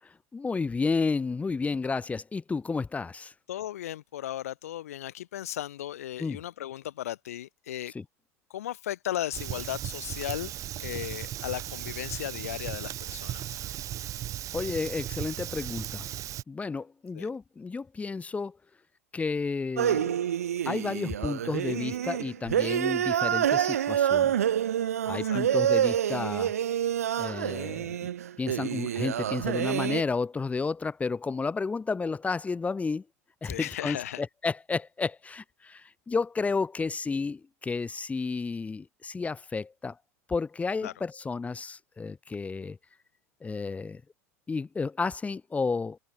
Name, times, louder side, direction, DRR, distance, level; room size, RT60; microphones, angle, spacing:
voice 1, 0.3-3.3 6.2-6.4 7.9-8.0 14.5-16.1 16.5-18.6 19.1-20.2 20.6-24.4 25.0-26.5 27.2-28.1 28.4-33.0 33.4-40.0 40.3-42.8 43.4-44.0 44.5-46.0, left 4 dB, 15° left, 1.6 m, -31 dB
voice 2, 3.5-7.9 8.5-10.5 10.8-13.6 17.1-17.3 25.2-25.4 33.4-34.2 40.8-40.9, left 12 dB, 80° left, 4.4 m, -36 dB
Fire, 9.3-16.4, right 13 dB, 45° right, 1.5 m, -36 dB
sound 1, 19.8-30.0, right 10 dB, 85° right, 0.8 m, -27 dB
open air
hypercardioid pair, 90°, 8 cm